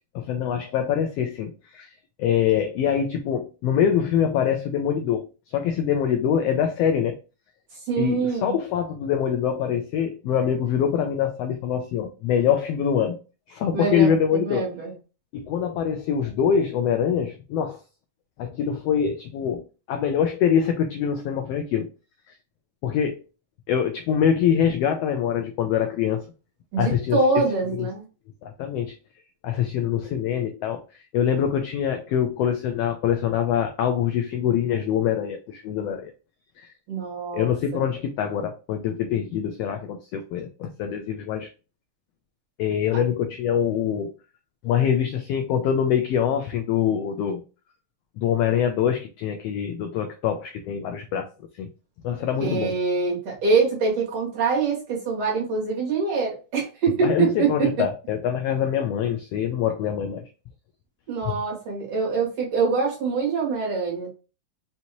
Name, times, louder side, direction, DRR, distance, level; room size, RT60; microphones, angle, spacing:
voice 1, 0.1-1.9 2.2-7.2 8.0-13.2 13.5-14.7 15.3-17.8 18.4-21.9 22.8-23.2 23.7-26.2 26.8-27.9 28.4-29.0 29.4-36.1 36.6-36.7 37.3-41.5 42.6-44.1 44.6-47.4 48.2-51.3 51.6-51.7 52.0-52.8 57.0-60.3 61.2-61.4, left 8 dB, 80° left, 6 dB, 1.4 m, -24 dB
voice 2, 7.9-8.5 13.7-14.9 26.7-28.0 36.9-37.8 42.9-43.0 52.4-57.7 61.1-64.1, right 4 dB, 65° right, -2 dB, 2.6 m, -24 dB
5.6 x 2.7 x 2.9 m, 0.33 s
omnidirectional pair, 3.3 m